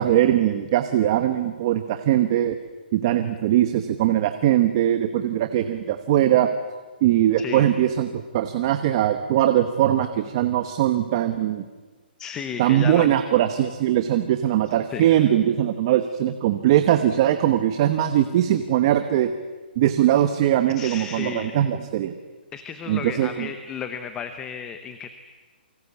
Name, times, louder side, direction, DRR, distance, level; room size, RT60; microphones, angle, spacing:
voice 1, 0.0-2.6 2.9-6.5 7.0-11.6 12.6-19.3 19.8-22.1 22.9-23.5, right 12 dB, 25° right, 8 dB, 1.1 m, -21 dB
voice 2, 12.2-13.1 14.9-15.3 20.8-21.5 22.5-25.1, left 7 dB, 10° left, 9 dB, 0.8 m, -33 dB
28.0 x 24.5 x 8.5 m, 1.3 s
hypercardioid pair, 175°, 6 cm